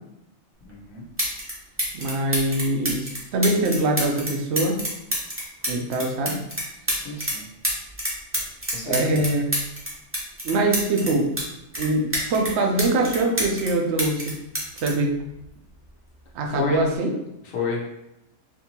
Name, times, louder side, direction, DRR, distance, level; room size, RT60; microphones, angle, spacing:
voice 1, 0.6-1.0 7.0-7.5 8.7-9.2 16.5-16.8 17.4-17.8, left 5 dB, 85° left, 0 dB, 1.1 m, -30 dB
sound 1, 0.7-0.8 1.2-1.5 1.8-7.4 7.6-11.4 11.7-13.7 14.0-15.8 16.7-17.0, equal, 15° right, 0.6 m, -28 dB
voice 2, 1.9-4.8 5.7-6.4 8.8-9.4 10.4-11.3 11.8-14.4 14.8-15.1 16.3-17.1, right 2 dB, 65° right, 2 dB, 0.8 m, -23 dB
3.6 x 2.7 x 2.8 m, 0.85 s
omnidirectional pair, 1.3 m